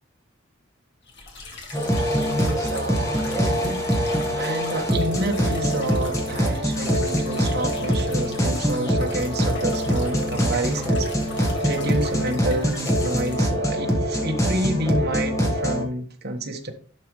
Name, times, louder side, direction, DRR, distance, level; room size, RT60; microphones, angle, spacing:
sound 1, 1.1-13.5, left 3 dB, 60° left, 1.8 m, -41 dB
sound 2, 1.7-15.8, equal, 15° left, 1.5 m, -24 dB
voice 1, 2.0-16.7, right 1 dB, 55° right, 2 dB, 1.4 m, -29 dB
11.0 x 5.2 x 3.2 m, 0.43 s
head